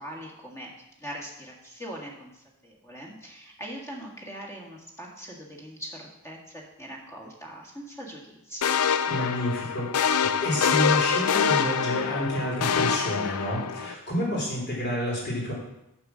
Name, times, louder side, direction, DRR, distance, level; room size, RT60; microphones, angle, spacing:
voice 1, 0.0-8.7, equal, 15° left, -1 dB, 1.7 m, -41 dB
sound 1, 8.6-13.9, left 7 dB, 75° left, 0.5 m, -25 dB
voice 2, 9.1-10.1 10.4-15.5, equal, 50° left, -5 dB, 3.4 m, -29 dB
6.4 x 6.4 x 6.1 m, 0.87 s
head